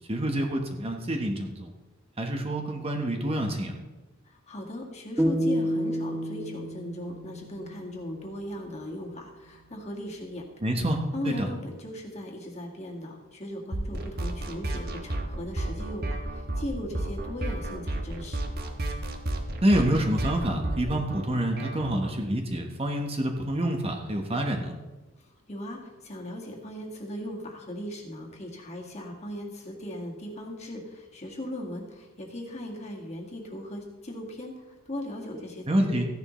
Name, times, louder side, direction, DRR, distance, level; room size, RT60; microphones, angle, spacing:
voice 1, 0.1-1.7 2.2-3.8 10.6-11.5 19.6-24.7 35.7-36.1, right 1 dB, 30° right, 3 dB, 1.1 m, -27 dB
voice 2, 4.3-10.8 11.1-18.5 25.2-36.0, left 1 dB, 35° left, 0 dB, 1.9 m, -38 dB
sound 1, 5.2-8.3, equal, 5° right, 1.2 m, -29 dB
sound 2, 13.7-22.1, right 1 dB, 50° right, 1.2 m, -32 dB
15.0 x 10.5 x 3.1 m, 1.1 s
head